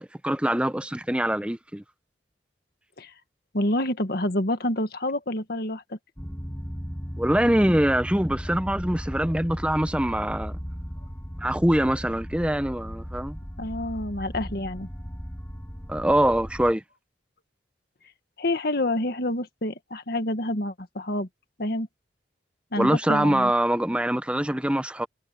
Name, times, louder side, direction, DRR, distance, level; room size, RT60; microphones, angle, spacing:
voice 1, 0.0-1.8 7.2-10.5 11.4-13.4 15.9-16.8 22.8-25.1, right 1 dB, 5° right, 0.8 m, -24 dB
voice 2, 3.5-6.0 13.6-14.9 18.4-21.3 21.6-21.9 22.7-23.5, left 1 dB, 60° left, 1.8 m, -28 dB
sound 1, 6.2-16.7, equal, 10° left, 5.6 m, -36 dB
head